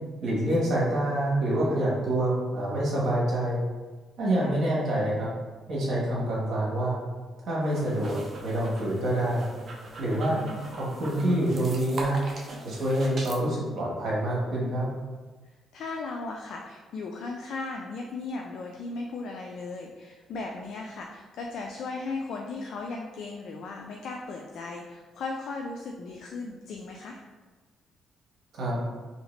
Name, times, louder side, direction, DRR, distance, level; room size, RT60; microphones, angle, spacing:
voice 1, 0.2-3.6 4.2-5.3 5.7-7.0 7.5-9.4 10.0-10.4 10.7-12.2 12.6-14.9 28.5-28.8, right 1 dB, 65° right, -5 dB, 1.3 m, -26 dB
sound 1, 7.6-13.4, right 2 dB, 50° right, 0.6 m, -41 dB
voice 2, 10.1-10.8 15.7-27.2, left 3 dB, 70° left, 0 dB, 0.3 m, -37 dB
2.8 x 2.8 x 3.2 m, 1.3 s
cardioid pair, 90°, 0 cm